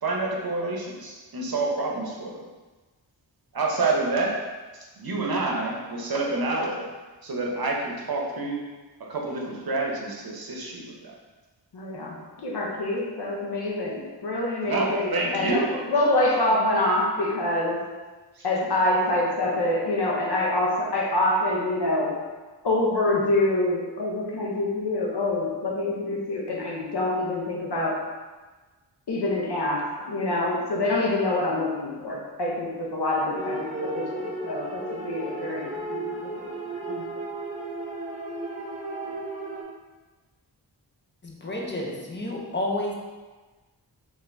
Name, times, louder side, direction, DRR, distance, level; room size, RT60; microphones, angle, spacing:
voice 1, 0.0-2.4 3.5-4.3 5.0-6.8 7.2-8.6 9.1-11.1 14.6-15.7 18.4-18.5, right 3 dB, 55° right, -1 dB, 0.7 m, -28 dB
voice 2, 11.7-17.9 18.4-22.2 22.6-28.0 29.1-36.5 36.9-37.0, left 1 dB, 65° left, -1 dB, 0.8 m, -26 dB
sound 1, 33.4-39.6, right 2 dB, 15° right, 0.7 m, -34 dB
voice 3, 41.2-42.9, left 1 dB, 25° left, -1 dB, 0.6 m, -30 dB
3.8 x 2.6 x 3.3 m, 1.3 s
wide cardioid pair, 75°, 43 cm